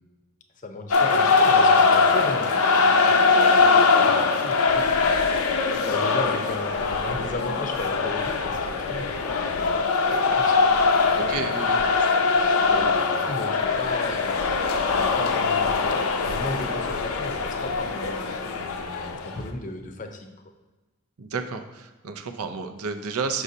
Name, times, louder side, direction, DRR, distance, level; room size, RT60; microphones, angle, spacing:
voice 1, 0.6-10.7 11.1-11.6 12.4-14.5 14.9-20.3, left 2 dB, 35° left, 6 dB, 0.6 m, -36 dB
sound 1, 0.9-19.4, left 4 dB, 85° left, 0.6 m, -22 dB
voice 2, 11.1-11.8 21.2-23.4, right 4 dB, 90° right, 7 dB, 0.6 m, -31 dB
6.4 x 6.2 x 2.7 m, 1.2 s
head